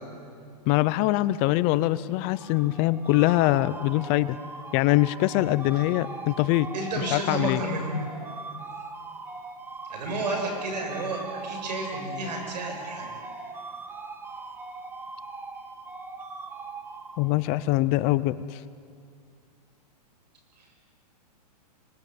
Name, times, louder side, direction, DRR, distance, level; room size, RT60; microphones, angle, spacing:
voice 1, 0.7-4.4 4.7-6.7 7.0-7.6 17.2-18.6, left 17 dB, 30° left, 16 dB, 0.5 m, -23 dB
sound 1, 2.3-17.6, right 3 dB, 10° right, 1.2 m, -40 dB
voice 2, 6.7-7.9 9.9-13.1 20.6-20.7, right 2 dB, 80° right, 3 dB, 7.8 m, -31 dB
25.5 x 19.5 x 9.4 m, 2.4 s
supercardioid pair, 160°, 21 cm